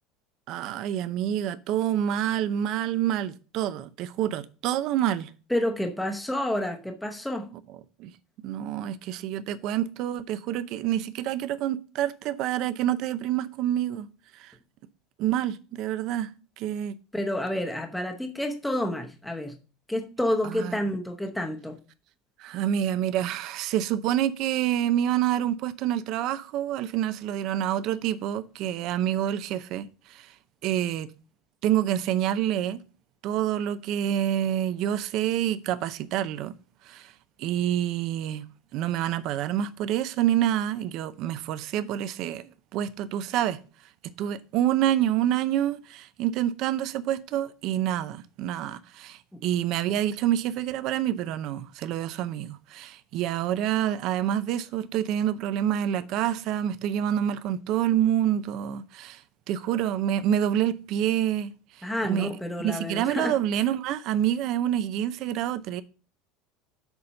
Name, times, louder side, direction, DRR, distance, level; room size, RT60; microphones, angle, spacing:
voice 1, 0.5-5.3 8.0-8.1 8.4-14.1 14.3-14.5 15.2-16.3 16.6-16.9 20.4-20.8 22.4-30.3 30.6-31.1 31.6-32.8 33.2-36.5 36.8-37.1 37.4-38.4 38.7-43.6 44.0-59.2 59.5-62.3 62.6-65.8, right 11 dB, 50° right, 0.6 m, -27 dB
voice 2, 5.5-7.5 17.1-19.6 19.9-21.8 49.3-49.4 61.8-63.4, left 1 dB, 5° left, 0.9 m, -29 dB
7.0 x 4.2 x 6.4 m
cardioid pair, 155°, 0 cm